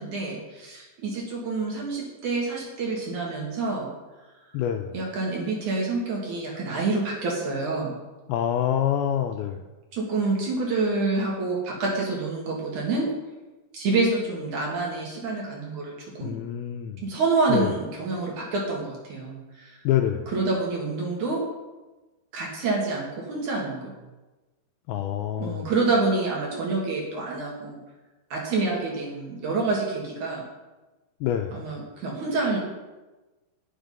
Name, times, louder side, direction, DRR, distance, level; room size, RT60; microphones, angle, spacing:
voice 1, 0.0-3.9 4.9-8.0 9.9-13.1 13.7-16.4 17.0-19.8 20.3-21.4 22.3-23.9 25.4-27.8 28.3-30.4 31.5-32.6, right 3 dB, 55° right, -2 dB, 3.0 m, -27 dB
voice 2, 4.5-5.0 8.3-9.6 16.2-17.1 17.5-17.7 19.9-20.3 24.9-25.7 31.2-31.6, left 10 dB, 80° left, 5 dB, 2.3 m, -26 dB
10.5 x 7.4 x 5.4 m, 1.1 s
omnidirectional pair, 4.8 m